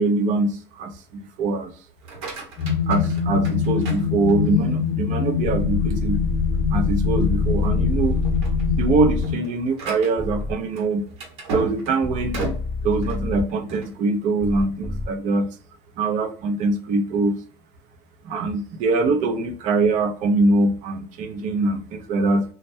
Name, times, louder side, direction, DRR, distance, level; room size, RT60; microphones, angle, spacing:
voice 1, 0.0-1.7 2.9-6.2 6.7-8.2 8.8-11.0 11.5-12.4 12.8-15.5 16.0-17.4 18.3-22.4, right 3 dB, 55° right, 0.6 m, -23 dB
sound 1, 1.9-4.7 5.2-5.7 6.1-6.2 6.6-6.8 7.5-7.8 8.1-14.0, right 3 dB, 75° right, 1.0 m, -35 dB
sound 2, 2.6-9.4, left 7 dB, 55° left, 0.6 m, -24 dB
sound 3, 5.4-9.2 10.2-10.5 12.0-13.4 14.4-15.1, left 3 dB, 20° right, 1.1 m, -26 dB
2.2 x 2.1 x 2.7 m
supercardioid pair, 115°, 16 cm